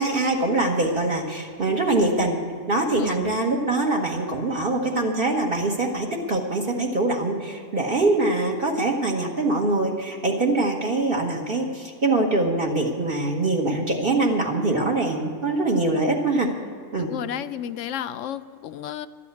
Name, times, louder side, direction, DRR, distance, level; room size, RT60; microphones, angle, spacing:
voice 1, 0.0-2.4 2.7-16.5 16.9-17.1, right 2 dB, 45° right, -1 dB, 1.4 m, -23 dB
voice 2, 17.0-19.1, left 10 dB, 75° left, 13 dB, 0.9 m, -32 dB
12.5 x 8.5 x 9.5 m, 2.2 s
omnidirectional pair, 1.3 m